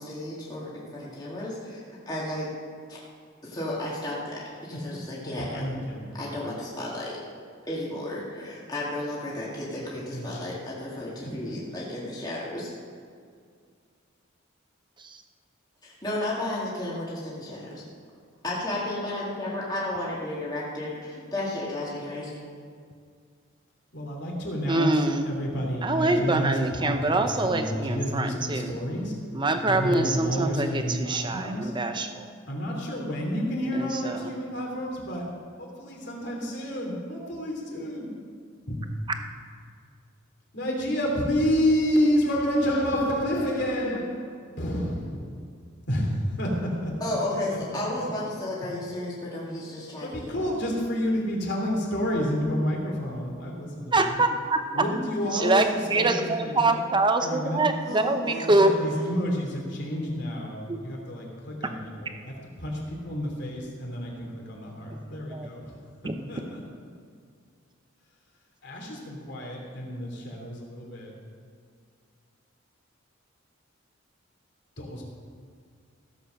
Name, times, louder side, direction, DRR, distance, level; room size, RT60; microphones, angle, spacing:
voice 1, 0.0-2.5 3.4-4.4 4.7-5.7 6.1-7.2 7.7-12.7 15.8-17.8 18.4-22.4 47.0-50.5 57.8-59.0, left 1 dB, 20° left, -6 dB, 2.2 m, -33 dB
voice 2, 5.2-6.2 10.1-10.5 11.2-12.0 23.9-29.1 29.7-31.7 32.5-35.2 35.6-38.1 38.7-38.8 40.5-45.4 45.9-46.9 50.0-54.2 54.7-56.8 57.2-57.6 58.6-65.7 66.3-66.6 68.6-71.1 74.8-75.0, equal, 55° left, -1 dB, 3.1 m, -29 dB
voice 3, 24.7-25.3 25.8-28.7 29.3-32.3 33.7-34.3 53.9-54.8 55.3-58.8 60.7-60.8 64.9-65.0 65.3-65.5 66.0-66.3, right 2 dB, 25° right, 6 dB, 0.8 m, -25 dB
15.5 x 7.7 x 6.5 m, 2.1 s
head